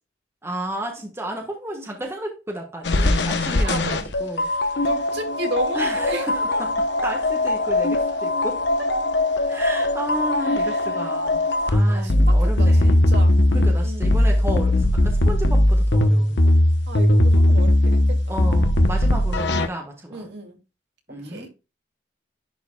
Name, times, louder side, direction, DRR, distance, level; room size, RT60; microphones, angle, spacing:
voice 1, 0.4-4.5 4.7-4.8 5.7-8.6 9.5-11.4 11.7-13.1 13.5-16.6 18.3-20.3 21.1-21.5, right 1 dB, 15° right, 1.3 m, -32 dB
sound 1, 2.8-19.7, left 1 dB, 65° left, 0.9 m, -19 dB
voice 2, 3.0-6.3 8.8-8.9 10.4-11.1 11.9-14.2 16.9-18.3 20.1-20.6 21.2-21.5, right 1 dB, 60° right, 2.5 m, -34 dB
10.5 x 4.9 x 2.3 m
head